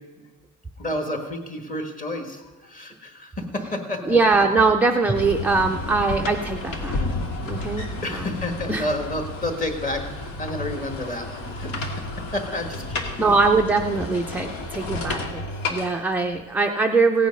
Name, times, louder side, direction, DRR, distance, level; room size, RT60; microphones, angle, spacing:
voice 1, 0.8-4.2 7.6-7.7 8.0-10.0 10.4-12.0 12.3-13.1, left 1 dB, 25° left, 4 dB, 1.6 m, -30 dB
voice 2, 4.0-7.0 7.4-8.9 13.2-15.4 15.7-17.3, right 3 dB, 5° right, 2 dB, 0.3 m, -22 dB
sound 1, 5.1-16.6, left 2 dB, 90° left, 2.1 m, -32 dB
16.5 x 9.4 x 5.3 m, 1.2 s
cardioid pair, 175°, 33 cm